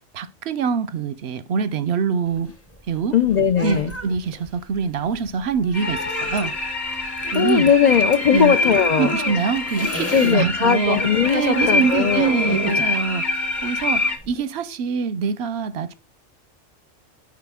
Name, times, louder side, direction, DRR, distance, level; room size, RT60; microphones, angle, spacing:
voice 1, 0.1-2.5 2.9-3.1 3.6-3.8 4.0-6.5 7.3-7.7 8.3-8.5 9.0-11.0 11.3-15.9, right 6 dB, 65° right, 0.7 m, -24 dB
sound 1, 2.3-10.4 10.7-14.4, left 2 dB, 15° left, 0.6 m, -32 dB
voice 2, 3.1-3.9 7.3-9.2 10.1-12.5, left 7 dB, 70° left, 0.4 m, -19 dB
sound 2, 5.7-14.2, left 3 dB, 40° left, 1.2 m, -25 dB
7.6 x 4.9 x 3.5 m
omnidirectional pair, 1.3 m